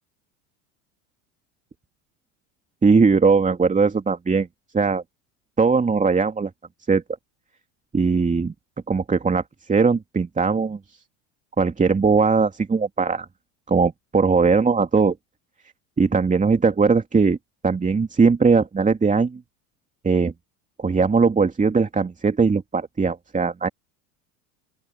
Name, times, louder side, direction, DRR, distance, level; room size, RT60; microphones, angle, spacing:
voice 1, 2.8-4.5 4.7-5.0 5.6-6.5 6.9-7.0 7.9-8.5 8.9-11.0 11.6-13.3 13.7-15.2 16.0-17.4 17.6-19.4 20.0-20.3 20.8-23.7, right 4 dB, 20° right, 2.8 m, -19 dB
open air
hypercardioid pair, 80°, 41 cm